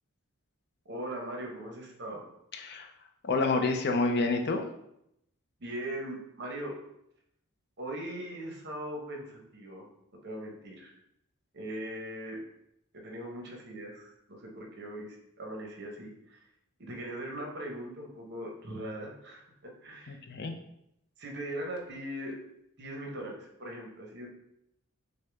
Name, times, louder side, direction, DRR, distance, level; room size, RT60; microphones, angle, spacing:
voice 1, 0.8-2.2 5.6-6.7 7.8-9.9 10.2-10.9 11.5-12.4 12.9-16.4 16.8-19.4 19.8-20.2 21.2-22.3 22.8-24.3, right 1 dB, 50° right, 1 dB, 1.0 m, -40 dB
voice 2, 2.5-2.9 3.2-4.6 20.1-20.5, left 3 dB, 50° left, 4 dB, 0.5 m, -28 dB
6.4 x 2.2 x 3.4 m, 0.79 s
head